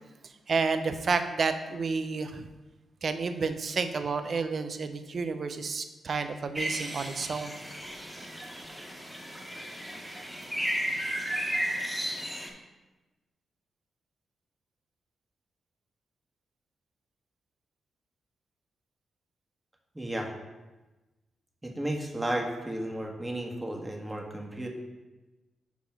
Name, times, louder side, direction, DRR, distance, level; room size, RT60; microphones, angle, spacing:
voice 1, 0.5-2.5 3.0-7.5, right 4 dB, 60° right, 9 dB, 0.6 m, -30 dB
sound 1, 6.5-12.5, equal, ahead, 1.6 m, -34 dB
voice 2, 19.9-20.3 21.6-24.7, right 1 dB, 20° right, 1 dB, 1.5 m, -33 dB
5.6 x 4.2 x 5.9 m, 1.1 s
supercardioid pair, 50°, 0 cm